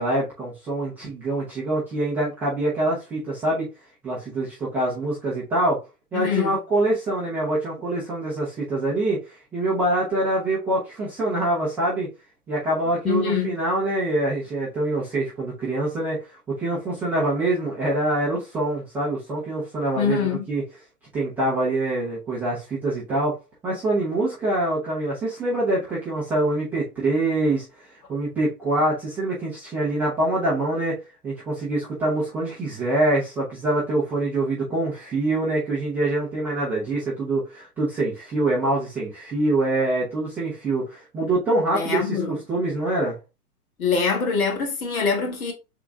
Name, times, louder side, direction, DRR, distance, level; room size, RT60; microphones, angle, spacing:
voice 1, 0.0-3.7 4.0-5.8 6.1-12.1 12.5-20.6 21.1-23.3 23.6-31.0 31.2-43.2, right 2 dB, 5° right, 0.4 m, -25 dB
voice 2, 6.1-6.6 13.0-13.6 20.0-20.5 41.7-42.4 43.8-45.5, left 6 dB, 65° left, 2.0 m, -24 dB
3.7 x 3.6 x 3.4 m
hypercardioid pair, 130°, 46 cm